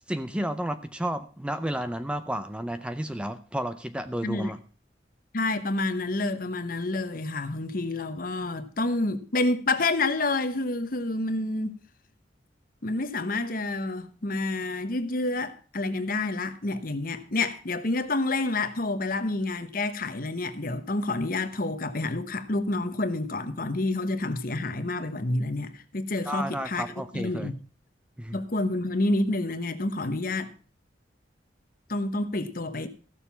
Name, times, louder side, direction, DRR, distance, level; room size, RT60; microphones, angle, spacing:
voice 1, 0.1-4.6 26.3-27.5 28.2-28.4, right 1 dB, 5° right, 0.5 m, -32 dB
voice 2, 4.2-4.5 5.3-11.7 12.8-27.5 28.3-30.5 31.9-32.9, left 2 dB, 50° left, 1.1 m, -28 dB
15.0 x 6.7 x 5.6 m
head